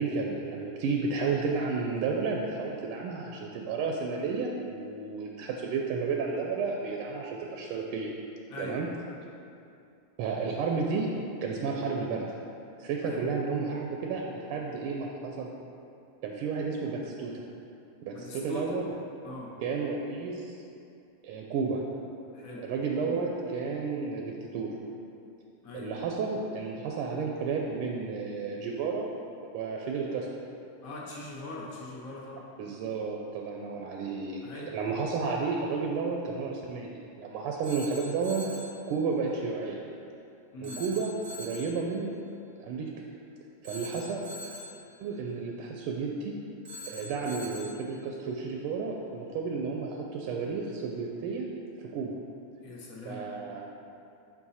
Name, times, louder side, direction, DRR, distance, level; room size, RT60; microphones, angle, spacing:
voice 1, 0.0-8.1 8.6-8.9 10.2-11.1 11.4-12.4 12.8-15.5 16.2-17.4 18.0-18.8 19.6-20.5 21.2-21.8 22.6-24.7 25.7-29.1 29.5-30.3 32.6-38.4 38.9-39.8 40.6-41.1 41.4-42.1 42.6-42.9 43.6-44.2 45.0-46.3 46.8-51.5 51.8-52.2 53.0-53.7, right 4 dB, 85° right, 0 dB, 1.5 m, -32 dB
voice 2, 18.1-18.8 19.2-19.5 22.3-22.6 25.6-25.9 30.8-32.5 34.4-34.7 40.5-40.8 52.6-53.2, left 2 dB, 60° left, -3 dB, 0.9 m, -41 dB
Telephone, 37.6-38.8 40.6-41.8 43.6-44.8 46.7-47.8, left 1 dB, 70° right, 0.6 m, -43 dB
5.8 x 4.7 x 4.1 m, 2.6 s
omnidirectional pair, 2.4 m